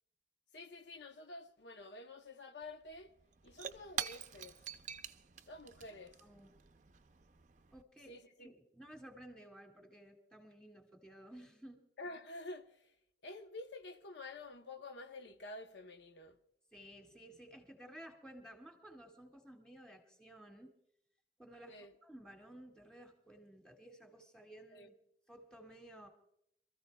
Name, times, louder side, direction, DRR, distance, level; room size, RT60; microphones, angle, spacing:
voice 1, 0.5-3.1 3.4-4.6 5.5-6.2 8.1-8.5 12.0-12.9 13.2-16.4 21.7-21.9 24.7-24.9, left 2 dB, 70° left, 0.9 m, -49 dB
Shatter / Crushing, 2.6-2.7 2.9-7.8, right 8 dB, 40° right, 0.5 m, -46 dB
voice 2, 6.2-6.6 7.7-11.8 16.7-20.7 21.4-24.9 25.3-26.1, right 1 dB, 5° left, 1.9 m, -55 dB
27.5 x 14.0 x 2.3 m
head